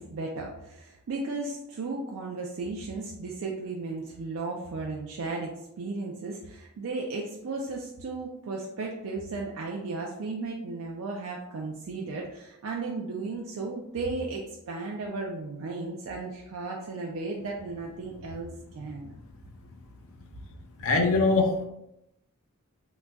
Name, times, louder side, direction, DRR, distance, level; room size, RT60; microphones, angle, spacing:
voice 1, 0.0-19.1, right 3 dB, 65° right, -1 dB, 0.3 m, -35 dB
voice 2, 20.8-21.6, left 3 dB, 60° left, 2 dB, 0.5 m, -22 dB
3.9 x 2.2 x 2.2 m, 0.86 s
head